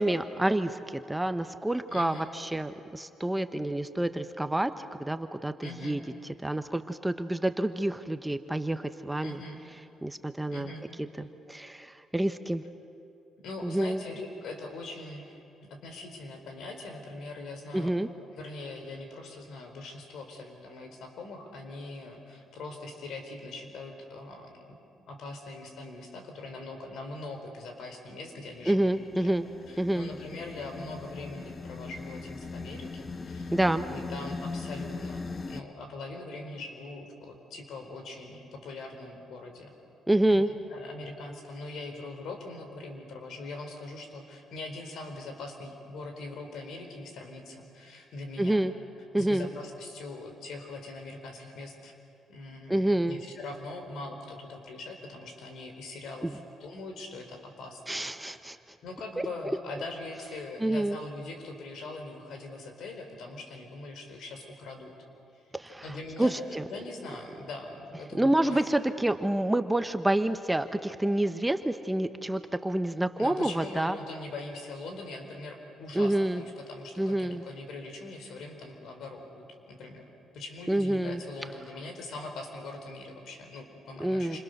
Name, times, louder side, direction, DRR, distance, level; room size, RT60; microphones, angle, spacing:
voice 1, 0.0-6.0 6.4-9.4 10.0-10.7 11.2-12.6 13.6-14.0 17.7-18.1 28.7-29.5 29.8-30.1 33.5-33.9 40.1-40.5 48.4-48.7 49.1-49.5 52.7-53.2 56.2-56.3 57.9-58.6 59.2-59.3 60.6-61.0 65.5-66.6 68.1-74.0 75.9-76.4 77.0-77.4 80.7-81.2 84.0-84.4, right 1 dB, 10° right, 9 dB, 1.0 m, -28 dB
voice 2, 1.9-2.3 5.6-6.0 9.2-9.6 10.5-10.8 13.4-15.4 15.7-17.9 18.3-24.5 25.1-28.9 29.2-29.4 29.7-33.5 33.9-35.2 35.5-39.7 40.3-40.4 40.7-48.7 49.2-51.9 52.3-57.8 58.2-58.3 58.8-64.9 65.8-66.4 66.7-68.7 73.2-80.0 80.3-84.4, left 2 dB, 75° left, 5 dB, 4.5 m, -42 dB
sound 1, 28.5-35.6, left 4 dB, 35° left, 1.0 m, -40 dB
28.5 x 26.5 x 6.7 m, 2.6 s
cardioid pair, 90°, 0 cm